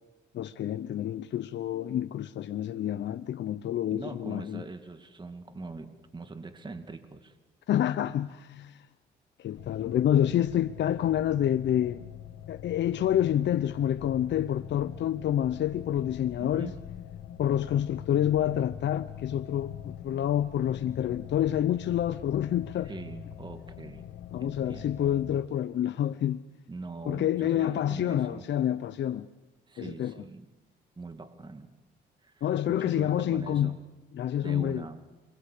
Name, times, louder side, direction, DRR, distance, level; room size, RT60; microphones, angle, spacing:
voice 1, 0.3-4.6 7.7-8.9 9.4-12.0 12.5-16.7 17.4-22.9 24.3-26.4 27.1-29.3 29.8-30.1 32.4-33.8 34.1-34.9, left 11 dB, 65° left, 0.8 m, -28 dB
voice 2, 3.9-7.4 16.4-16.7 22.8-24.1 24.4-25.0 26.7-28.4 29.7-30.5 31.0-31.7 32.2-33.7 34.4-35.0, right 3 dB, 25° right, 2.1 m, -42 dB
sound 1, 9.5-25.4, left 10 dB, 80° left, 1.4 m, -44 dB
27.5 x 23.0 x 8.4 m
cardioid pair, 90°, 20 cm